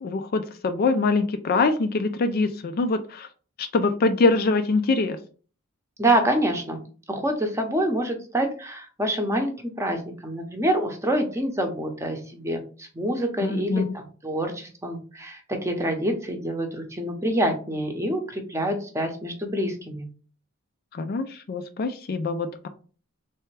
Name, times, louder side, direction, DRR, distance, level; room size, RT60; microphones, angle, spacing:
voice 1, 0.0-3.3 3.6-5.2 13.4-13.9 20.9-22.7, left 3 dB, 45° left, 8 dB, 0.4 m, -24 dB
voice 2, 6.0-20.1, right 1 dB, 15° right, 4 dB, 0.7 m, -26 dB
3.4 x 3.3 x 3.2 m, 0.38 s
head